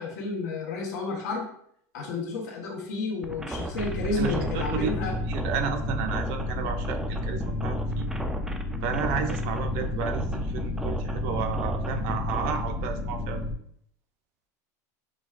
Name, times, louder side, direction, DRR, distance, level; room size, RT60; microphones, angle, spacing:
voice 1, 0.0-1.5 1.9-5.1, left 3 dB, 85° left, -1 dB, 1.1 m, -31 dB
sound 1, 3.2-12.5, right 1 dB, 5° right, 0.3 m, -35 dB
sound 2, 3.7-13.5, left 1 dB, 65° left, 1.3 m, -31 dB
voice 2, 4.2-5.0 5.3-8.1 8.8-13.4, right 6 dB, 60° right, 6 dB, 0.5 m, -32 dB
6.1 x 2.2 x 2.4 m, 0.68 s
supercardioid pair, 130°, 9 cm